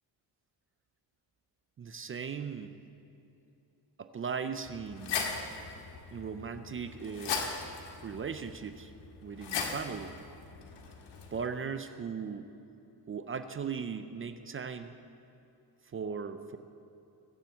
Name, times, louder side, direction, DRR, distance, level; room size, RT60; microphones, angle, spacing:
voice 1, 1.8-2.7 4.0-5.2 6.1-7.5 8.0-8.9 9.2-10.2 11.3-12.5 13.1-15.0 15.9-16.6, right 6 dB, 30° right, 9 dB, 0.5 m, -38 dB
sound 1, 4.7-11.4, left 5 dB, 80° left, 1.9 m, -39 dB
20.5 x 7.4 x 8.2 m, 2.8 s
wide cardioid pair, 180°, 42 cm